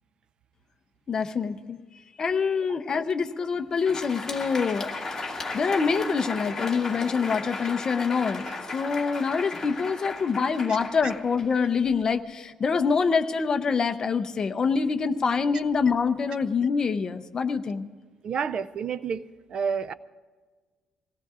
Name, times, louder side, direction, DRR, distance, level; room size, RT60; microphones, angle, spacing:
voice 1, 1.1-1.8 2.2-4.9 5.2-17.9, left 5 dB, 30° left, 8 dB, 0.7 m, -26 dB
Crowd, 3.6-12.1, left 3 dB, 15° left, 1.9 m, -35 dB
voice 2, 18.2-19.2 19.5-19.9, right 6 dB, 40° right, 15 dB, 0.4 m, -29 dB
25.5 x 18.0 x 2.5 m, 1.4 s
cardioid pair, 155°, 2 cm